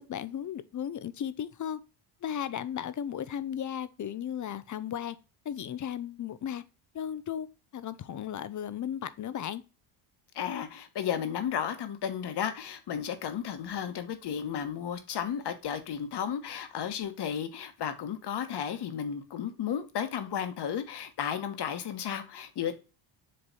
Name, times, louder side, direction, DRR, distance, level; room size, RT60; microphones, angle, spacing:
voice 1, 0.0-1.8 2.2-5.2 5.4-6.6 6.9-7.5 7.7-9.6, left 9 dB, 40° left, 0.7 m, -35 dB
voice 2, 10.3-22.7, left 8 dB, 55° left, 1.4 m, -33 dB
7.7 x 3.3 x 4.1 m
cardioid pair, 105°, 47 cm